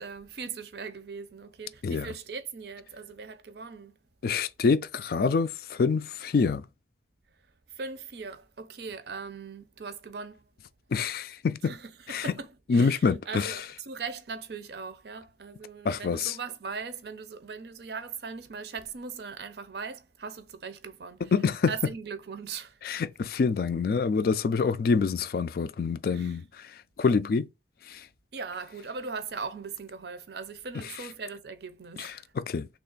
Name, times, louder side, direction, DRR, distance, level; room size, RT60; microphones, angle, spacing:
voice 1, 0.0-3.9 7.8-10.4 11.6-21.3 21.7-22.7 26.1-26.4 28.3-32.1, right 5 dB, 60° right, 0.5 m, -39 dB
voice 2, 4.2-6.6 10.9-11.7 12.1-12.3 12.7-13.6 15.8-16.4 21.3-21.7 22.8-26.7 27.0-27.5 27.9-28.1 32.0-32.7, left 5 dB, 55° left, 0.3 m, -26 dB
3.2 x 2.4 x 3.8 m
head